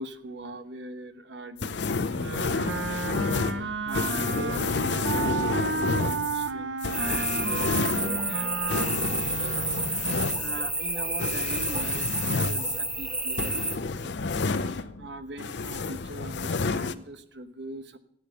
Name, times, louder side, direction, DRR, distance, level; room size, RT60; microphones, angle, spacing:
voice 1, 0.0-3.2 3.5-9.9 10.4-18.0, right 2 dB, 75° right, 9 dB, 1.1 m, -41 dB
sound 1, 1.6-15.1 15.4-16.9, left 4 dB, 75° left, 0.6 m, -30 dB
Wind instrument woodwind instrument, 2.1-10.0, right 4 dB, 90° right, 1.0 m, -32 dB
Summer Istria Nature Sound, 6.9-13.8, right 2 dB, 5° right, 0.6 m, -30 dB
14.5 x 8.6 x 6.9 m, 0.72 s
head